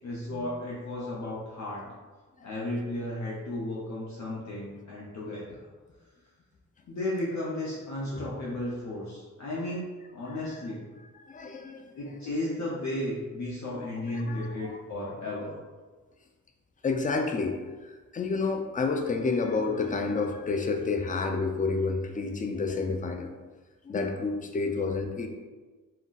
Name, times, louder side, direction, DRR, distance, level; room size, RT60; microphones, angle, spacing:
voice 1, 0.0-1.8 2.4-5.7 6.9-10.8 11.9-15.6, left 1 dB, 55° left, -6 dB, 0.7 m, -34 dB
voice 2, 11.1-12.0 13.7-14.8 16.8-23.3 23.8-25.3, left 4 dB, 25° left, 4 dB, 0.4 m, -30 dB
2.4 x 2.1 x 3.8 m, 1.3 s
cardioid pair, 75°, 34 cm